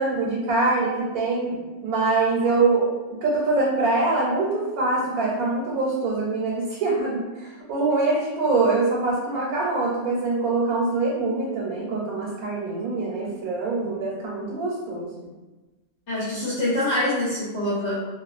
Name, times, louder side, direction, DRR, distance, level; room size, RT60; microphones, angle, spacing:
voice 1, 0.0-1.6 1.8-2.9 3.2-15.1, right 3 dB, 90° right, -4 dB, 1.0 m, -24 dB
voice 2, 16.1-17.9, left 1 dB, 60° left, -9 dB, 1.0 m, -25 dB
2.4 x 2.2 x 2.3 m, 1.2 s
omnidirectional pair, 1.5 m